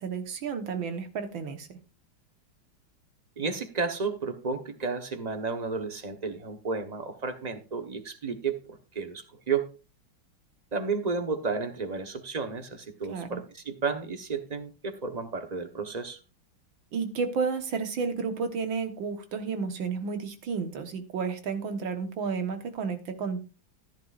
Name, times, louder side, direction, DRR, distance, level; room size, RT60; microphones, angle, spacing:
voice 1, 0.0-1.7 13.1-13.4 16.9-23.4, right 5 dB, 75° right, 7 dB, 2.1 m, -32 dB
voice 2, 3.4-9.7 10.7-16.2, right 4 dB, 30° right, 7 dB, 0.9 m, -32 dB
14.0 x 10.5 x 2.5 m, 0.31 s
omnidirectional pair, 2.2 m